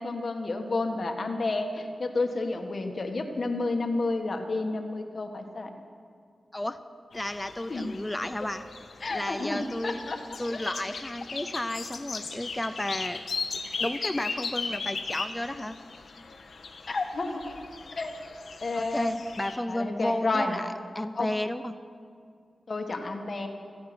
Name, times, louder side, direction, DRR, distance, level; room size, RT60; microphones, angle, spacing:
voice 1, 0.0-5.7 7.7-8.0 9.0-10.2 16.9-17.5 18.0-18.1 18.6-19.1 19.7-20.6 21.1-21.3 22.7-23.5, left 3 dB, 45° left, 5 dB, 1.5 m, -30 dB
sound 1, 7.1-19.6, left 4 dB, 85° left, 1.3 m, -38 dB
voice 2, 7.1-8.7 9.1-10.0 10.4-13.2 13.8-15.8 18.7-21.8, left 1 dB, 10° left, 10 dB, 0.5 m, -32 dB
14.5 x 10.5 x 9.4 m, 2.2 s
wide cardioid pair, 125°, 0 cm